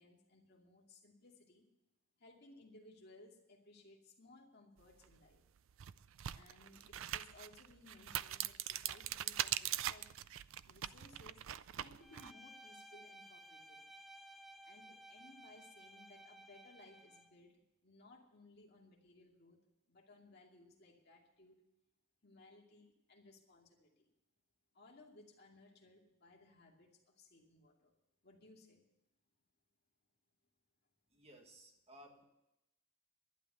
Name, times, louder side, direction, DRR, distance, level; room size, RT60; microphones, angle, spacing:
voice 1, 0.0-1.7 2.2-5.4 6.3-10.1 10.7-11.4 11.8-13.9 14.6-19.6 19.9-21.6 22.2-24.1 24.7-27.9 28.2-28.8, left 2 dB, 50° left, 0 dB, 2.5 m, -62 dB
sound 1, 5.0-5.1 5.7-12.3, right 12 dB, 65° right, 0.4 m, -41 dB
Bowed string instrument, 12.0-17.4, right 1 dB, ahead, 0.5 m, -57 dB
voice 2, 31.1-32.2, equal, 30° right, 3 dB, 1.6 m, -59 dB
11.5 x 11.0 x 6.8 m, 0.90 s
head